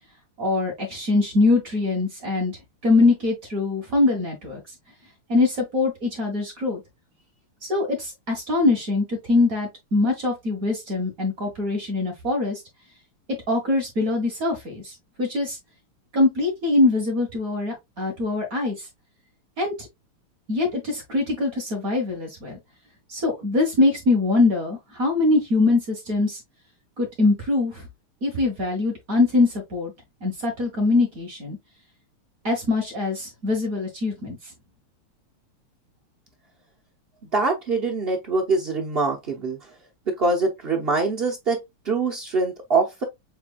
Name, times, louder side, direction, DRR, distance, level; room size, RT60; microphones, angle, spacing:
voice 1, 0.4-2.6 2.8-4.6 5.3-6.8 7.6-12.6 13.5-15.6 16.1-18.9 19.6-19.9 20.5-22.6 23.1-26.4 27.0-27.8 28.2-29.9 30.2-31.6 32.4-34.4, left 3 dB, 45° right, 1.6 m, -23 dB
voice 2, 37.3-39.6 40.1-41.6 41.8-43.0, right 3 dB, 70° right, 0.5 m, -24 dB
6.7 x 3.3 x 2.3 m
omnidirectional pair, 2.4 m